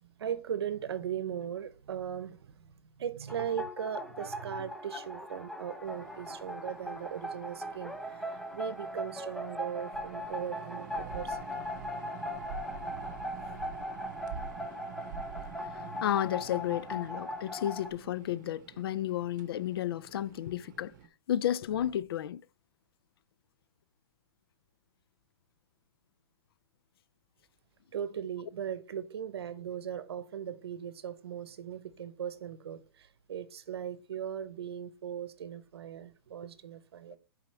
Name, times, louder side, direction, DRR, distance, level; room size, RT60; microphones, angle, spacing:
voice 1, 0.0-11.6 27.9-37.2, right 9 dB, 80° right, 0.8 m, -38 dB
sound 1, 3.3-17.9, left 1 dB, ahead, 0.6 m, -39 dB
sound 2, 5.8-21.1, right 7 dB, 50° right, 0.9 m, -48 dB
voice 2, 16.0-20.9 21.3-22.4, left 11 dB, 70° left, 0.4 m, -32 dB
7.4 x 4.9 x 3.2 m
hypercardioid pair, 155°, 13 cm